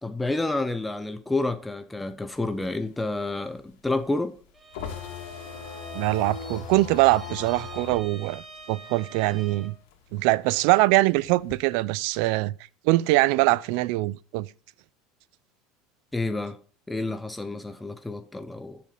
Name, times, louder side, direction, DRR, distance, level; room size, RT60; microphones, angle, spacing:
voice 1, 0.0-4.4 16.1-16.6 16.9-18.8, left 2 dB, 5° left, 0.6 m, -29 dB
sound 1, 2.4-9.5 9.8-11.5, left 6 dB, 80° left, 2.5 m, -39 dB
Bowed string instrument, 4.5-9.8, right 3 dB, 10° right, 1.2 m, -46 dB
voice 2, 5.9-9.7 10.1-12.5 12.8-14.5, right 19 dB, 60° right, 0.4 m, -23 dB
10.5 x 6.8 x 5.4 m
cardioid pair, 160°, 0 cm